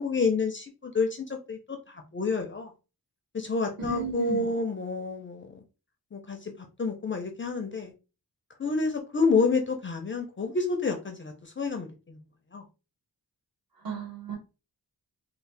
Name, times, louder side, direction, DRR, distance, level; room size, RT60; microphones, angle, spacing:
voice 1, 0.0-2.7 3.3-5.6 6.1-6.5 6.8-7.9 8.6-12.2 12.5-12.6, left 4 dB, 30° left, 0.4 m, -29 dB
voice 2, 3.8-4.4 13.8-14.4, right 5 dB, 60° right, 1.2 m, -34 dB
2.6 x 2.0 x 3.2 m
wide cardioid pair, 130°, 39 cm